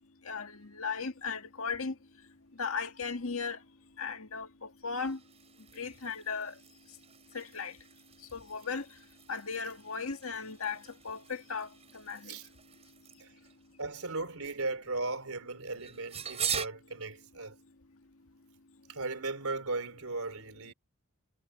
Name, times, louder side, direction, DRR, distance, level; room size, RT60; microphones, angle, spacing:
voice 1, 0.3-1.9 2.6-3.6 4.0-5.2 5.8-6.5 7.3-7.7 8.3-8.8 9.3-10.8 11.0-11.7 11.9-12.4, left 5 dB, 75° left, 1.9 m, -36 dB
sound 1, 0.9-16.7, right 8 dB, 30° right, 4.9 m, -45 dB
voice 2, 13.8-17.6 18.9-20.7, right 3 dB, 90° right, 3.5 m, -37 dB
head